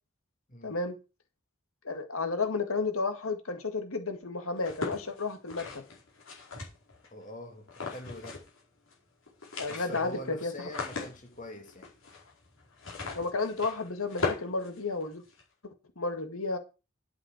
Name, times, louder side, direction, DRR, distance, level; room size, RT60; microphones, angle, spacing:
voice 1, 0.6-1.0 1.8-5.8 9.6-10.5 13.1-15.2 16.0-16.6, left 3 dB, 90° left, 1.9 m, -32 dB
sound 1, 4.6-7.1 7.7-8.6 8.9-9.0 9.3-15.4, left 4 dB, 70° left, 4.7 m, -39 dB
voice 2, 7.1-8.5 9.7-11.9, equal, 35° left, 2.2 m, -44 dB
11.0 x 7.5 x 5.0 m
head